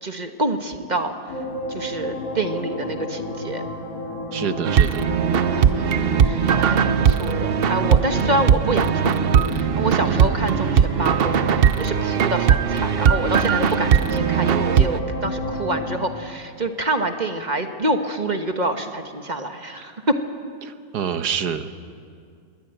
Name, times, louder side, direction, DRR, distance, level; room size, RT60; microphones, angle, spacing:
voice 1, 0.0-1.1 1.7-3.6 5.5-20.2, right 1 dB, 30° right, 6 dB, 1.3 m, -27 dB
sound 1, 1.3-16.0, left 1 dB, 65° left, 3.1 m, -31 dB
voice 2, 4.3-5.1 10.1-10.4 20.6-21.7, right 8 dB, 90° right, 10 dB, 1.6 m, -27 dB
sound 2, 4.7-15.0, right 8 dB, 55° right, 0.7 m, -19 dB
22.0 x 20.0 x 9.0 m, 2.3 s
omnidirectional pair, 1.7 m